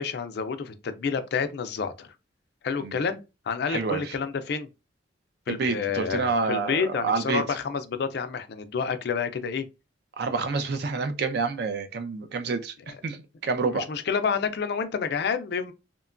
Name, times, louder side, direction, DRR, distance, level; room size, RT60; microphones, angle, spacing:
voice 1, 0.0-2.1 2.6-3.2 3.5-4.7 5.5-9.6 13.7-15.7, left 6 dB, 60° left, 0.4 m, -29 dB
voice 2, 3.7-4.1 5.5-7.4 10.2-13.2 13.4-13.8, right 4 dB, 60° right, 0.4 m, -28 dB
2.8 x 2.2 x 2.4 m
head